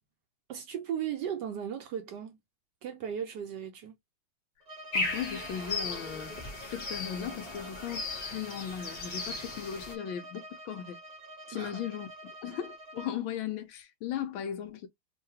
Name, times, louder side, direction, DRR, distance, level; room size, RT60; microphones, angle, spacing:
voice 1, 0.5-2.4 2.8-3.9 11.5-11.8, right 9 dB, 70° right, 1.1 m, -36 dB
Bowed string instrument, 4.6-13.2, right 1 dB, 30° right, 0.8 m, -47 dB
voice 2, 4.9-6.3 6.7-8.0 8.3-11.0 11.5-12.1 12.4-14.9, left 9 dB, 80° left, 1.5 m, -37 dB
sound 1, 4.9-9.9, left 3 dB, 45° left, 0.8 m, -36 dB
3.8 x 2.3 x 2.7 m
omnidirectional pair, 2.3 m